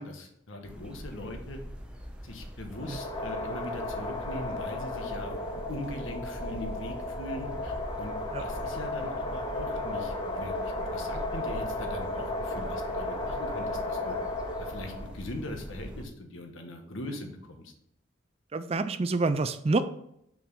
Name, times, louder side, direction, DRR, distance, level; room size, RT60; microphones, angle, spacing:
voice 1, 0.0-1.6 2.2-14.2 14.6-17.7, left 1 dB, 70° left, 4 dB, 1.3 m, -41 dB
sound 1, 0.6-16.0, equal, 5° right, 0.7 m, -43 dB
sound 2, 2.7-15.2, left 2 dB, 20° left, 1.0 m, -34 dB
voice 2, 18.5-19.8, right 3 dB, 30° right, 11 dB, 0.4 m, -27 dB
5.9 x 5.0 x 5.4 m, 0.74 s
head